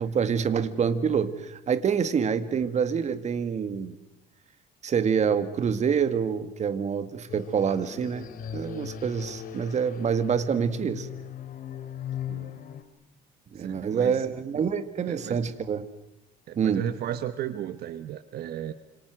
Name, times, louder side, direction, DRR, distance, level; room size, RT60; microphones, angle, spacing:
voice 1, 0.0-3.9 4.8-8.3 8.5-11.1 13.5-15.9 16.6-16.9, right 7 dB, 45° right, 12 dB, 1.9 m, -26 dB
sound 1, 7.3-12.8, left 8 dB, 55° left, 2.7 m, -38 dB
voice 2, 13.6-14.3 15.1-15.4 16.5-18.7, right 11 dB, 70° right, 12 dB, 1.2 m, -34 dB
29.0 x 26.5 x 6.2 m, 0.91 s
cardioid pair, 110°, 17 cm